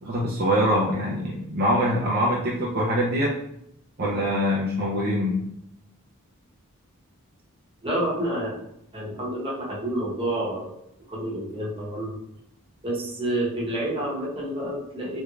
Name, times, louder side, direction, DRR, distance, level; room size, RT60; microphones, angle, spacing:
voice 1, 0.0-3.3 4.0-5.4, equal, 45° right, -5 dB, 0.6 m, -24 dB
voice 2, 7.8-8.5 8.9-10.8 11.1-12.2 12.8-15.2, right 1 dB, 25° right, -5 dB, 1.0 m, -29 dB
3.4 x 3.2 x 2.4 m, 0.77 s
head